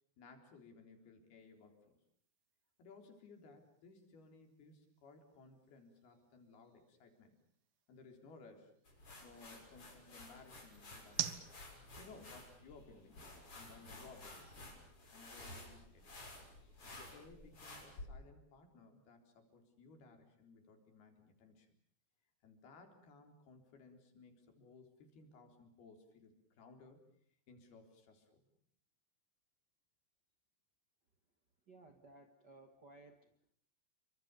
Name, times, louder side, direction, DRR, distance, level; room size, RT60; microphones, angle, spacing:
voice 1, 0.2-2.0 2.8-7.4 7.9-8.7 9.2-11.5 12.0-14.6 15.1-16.2 16.9-21.7 22.4-27.0 27.5-28.6, left 4 dB, 85° left, 5 dB, 5.9 m, -60 dB
sound 1, 1.4-15.6, right 11 dB, 85° right, 3.3 m, -52 dB
sound 2, 8.9-18.0, left 2 dB, 35° left, 7.3 m, -54 dB
voice 2, 31.7-33.5, right 2 dB, 40° right, 6 dB, 1.6 m, -60 dB
28.5 x 25.0 x 6.9 m, 0.62 s
omnidirectional pair, 4.4 m